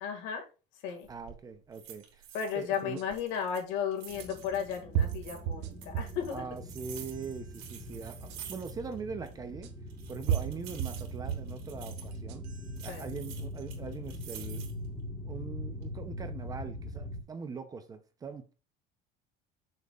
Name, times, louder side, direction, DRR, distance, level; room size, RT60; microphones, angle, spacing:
voice 1, 0.0-0.4 0.8-1.1 2.3-6.4 12.9-13.1, left 8 dB, 70° left, 2.0 m, -34 dB
sound 1, 1.0-1.4 1.7-2.8 3.1-5.4 5.8-9.0 9.2-9.3 9.9-12.2 12.8-14.9 15.4-15.9, right 9 dB, 85° right, 2.6 m, -49 dB
voice 2, 1.1-2.2 2.5-3.0 6.3-9.7 10.1-12.4 12.8-14.7 15.2-18.5, right 5 dB, 20° right, 0.6 m, -42 dB
sound 2, 3.0-3.1 4.3-4.4 4.9-6.3 6.8-7.3 8.3-8.4 9.6-9.7 10.3-11.6 12.1-12.7, right 10 dB, 60° right, 1.0 m, -33 dB
sound 3, 4.1-17.2, equal, 5° left, 1.6 m, -42 dB
7.2 x 6.5 x 2.4 m
cardioid pair, 165°, 19 cm